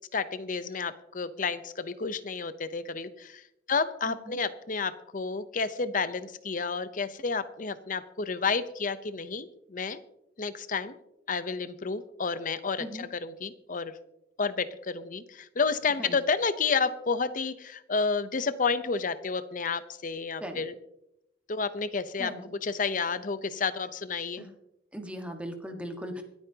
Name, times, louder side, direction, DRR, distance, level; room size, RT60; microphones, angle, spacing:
voice 1, 0.1-3.4 3.7-10.0 10.4-11.0 11.3-13.9 14.4-20.7 21.5-22.3 22.6-24.5, left 5 dB, 50° left, 13 dB, 0.8 m, -30 dB
voice 2, 4.0-4.4 12.8-13.1 16.0-16.2 20.4-20.6 22.2-22.4 24.4-24.5 24.9-26.2, equal, 5° right, 4 dB, 1.5 m, -38 dB
26.0 x 9.1 x 2.9 m, 0.84 s
head